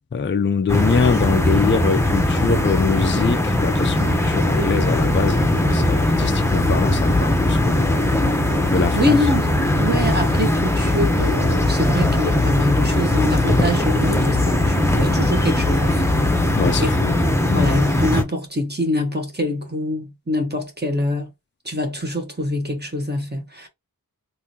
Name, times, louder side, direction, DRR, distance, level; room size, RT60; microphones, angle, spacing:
voice 1, 0.1-8.1 8.7-9.2 16.6-17.2 17.5-17.8, left 5 dB, 35° left, 0.4 m, -23 dB
sound 1, 0.7-18.2, left 1 dB, 5° left, 0.8 m, -19 dB
voice 2, 8.7-9.5 9.8-16.1 16.8-17.0 17.5-21.3 21.6-23.7, left 1 dB, 25° right, 1.2 m, -24 dB
3.6 x 2.6 x 2.8 m
wide cardioid pair, 45°, 37 cm